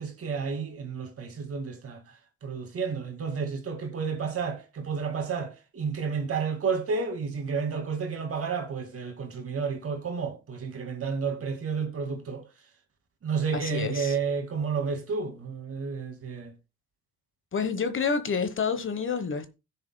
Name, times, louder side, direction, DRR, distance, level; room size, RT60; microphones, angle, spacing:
voice 1, 0.0-2.0 2.4-12.4 13.2-16.5, right 5 dB, 50° right, 2.1 m, -31 dB
voice 2, 13.5-14.2 17.5-19.5, left 5 dB, 40° left, 1.1 m, -28 dB
16.0 x 6.7 x 2.2 m
cardioid pair, 90°, 30 cm